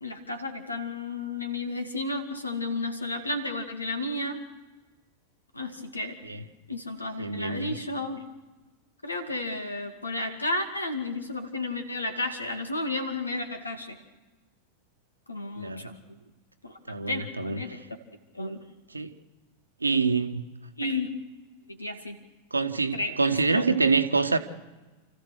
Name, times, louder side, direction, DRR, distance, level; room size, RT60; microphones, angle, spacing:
voice 1, 0.0-4.4 5.5-6.2 6.7-8.2 9.0-14.0 15.3-16.0 16.6-16.7 17.1-17.8 18.3-18.6 20.8-21.1 21.7-22.2 22.9-23.2 23.5-23.6, left 2 dB, 80° left, 2.3 m, -32 dB
voice 2, 7.2-7.8 15.6-15.9 16.9-17.6 18.9-19.1 19.8-20.4 22.5-24.4, right 4 dB, 80° right, 1.3 m, -26 dB
29.0 x 15.0 x 6.5 m
figure-of-eight pair, 90°, 0 cm